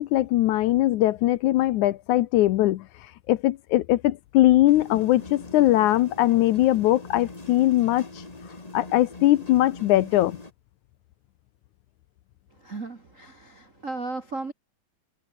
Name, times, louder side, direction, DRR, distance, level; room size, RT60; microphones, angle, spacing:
voice 1, 0.0-8.2 8.7-10.4, left 15 dB, 90° left, 1.7 m, -21 dB
sound 1, 4.7-10.5, left 2 dB, 20° left, 1.2 m, -42 dB
voice 2, 12.5-14.5, right 3 dB, 35° right, 1.3 m, -35 dB
omnidirectional pair, 4.5 m